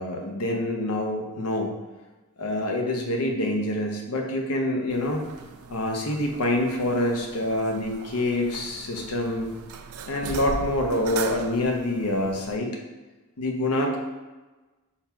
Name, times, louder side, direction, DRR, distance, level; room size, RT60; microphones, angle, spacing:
voice 1, 0.0-1.8 2.4-5.2 5.7-9.5 10.1-12.8 13.4-14.0, left 1 dB, 85° left, 2 dB, 0.8 m, -26 dB
sound 1, 4.9-12.6, right 5 dB, 70° right, 0.4 m, -39 dB
3.9 x 2.9 x 4.4 m, 1.2 s
head